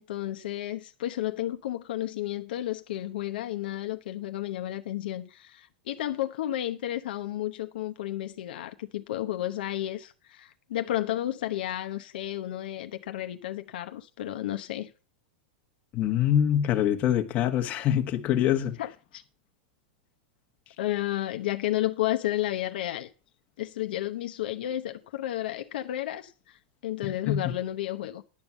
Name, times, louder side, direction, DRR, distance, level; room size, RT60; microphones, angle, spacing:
voice 1, 0.0-14.9 18.8-19.2 20.8-23.1 23.6-28.2, left 14 dB, 70° left, 0.9 m, -32 dB
voice 2, 15.9-18.8 27.0-27.4, left 10 dB, 30° left, 1.2 m, -25 dB
11.0 x 5.3 x 7.3 m
supercardioid pair, 155°, 5 cm